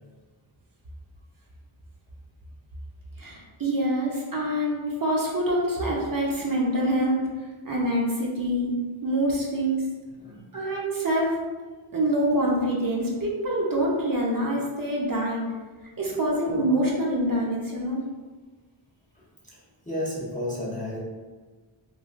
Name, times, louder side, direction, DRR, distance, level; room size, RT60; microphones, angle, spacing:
voice 1, 3.2-7.2 7.6-8.7 9.0-9.8 10.5-11.4 11.9-15.4 16.0-18.0, right 1 dB, 45° right, -3 dB, 0.7 m, -25 dB
voice 2, 10.2-10.5 19.2-21.0, left 1 dB, 15° left, -7 dB, 0.6 m, -33 dB
3.2 x 2.3 x 2.5 m, 1.3 s
wide cardioid pair, 75°, 49 cm